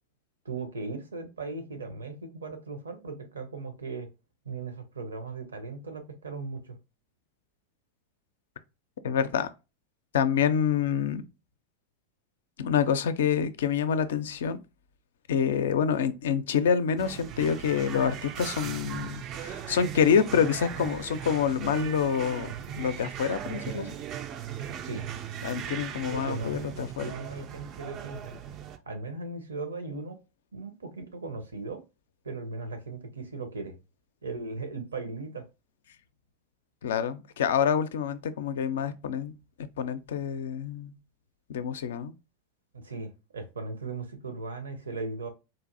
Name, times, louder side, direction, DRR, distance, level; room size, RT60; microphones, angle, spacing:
voice 1, 0.4-4.1 4.4-6.8 24.8-25.0 26.1-28.4 28.7-30.2 30.5-31.8 32.2-33.8 34.2-35.4 42.7-45.3, right 3 dB, 70° right, 0.8 m, -38 dB
voice 2, 9.0-9.5 10.1-11.2 12.6-14.6 15.3-24.0 25.4-27.0 36.8-39.3 39.8-40.9 41.5-42.1, left 7 dB, 60° left, 0.4 m, -27 dB
sound 1, 17.0-28.8, right 9 dB, 35° right, 0.3 m, -38 dB
4.1 x 2.5 x 2.5 m
figure-of-eight pair, 90°, 0 cm